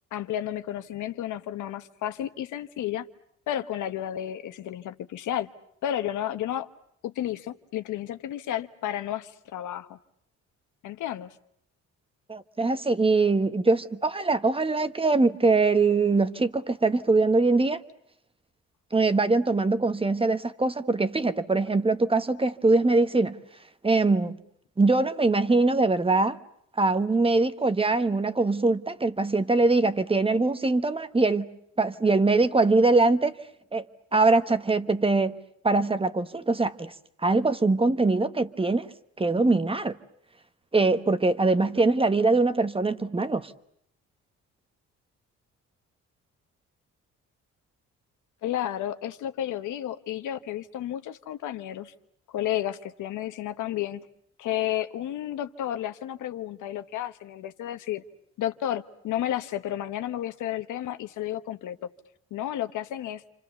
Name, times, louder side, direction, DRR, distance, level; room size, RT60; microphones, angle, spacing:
voice 1, 0.1-3.1 3.5-5.5 5.8-6.7 7.0-10.0 10.8-11.3 48.4-51.9 52.3-54.0 54.4-58.0 58.4-61.9 62.3-63.2, left 12 dB, 80° left, 1.1 m, -32 dB
voice 2, 12.3-17.8 18.9-23.4 23.8-24.4 24.8-26.4 26.8-31.5 31.8-33.3 33.7-33.8 34.1-35.4 35.6-36.9 37.2-38.9 39.2-40.0 40.7-43.5, right 3 dB, 20° right, 1.1 m, -22 dB
29.0 x 25.5 x 7.0 m
cardioid pair, 90°, 30 cm